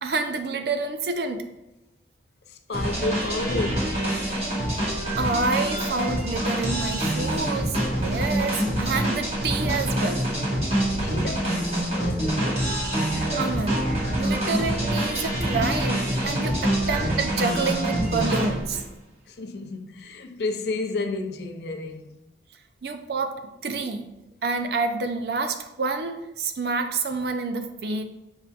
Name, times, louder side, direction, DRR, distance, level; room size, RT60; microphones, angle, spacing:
voice 1, 0.0-1.4 5.2-10.3 13.4-13.8 14.1-18.8 22.8-24.1 24.4-28.0, right 4 dB, 60° right, 0.4 m, -28 dB
voice 2, 2.5-4.6 11.0-12.7 16.7-16.9 19.3-22.2, left 3 dB, 70° left, 0.5 m, -32 dB
sound 1, 2.7-18.8, right 1 dB, 35° right, 1.2 m, -26 dB
5.8 x 3.6 x 2.4 m
head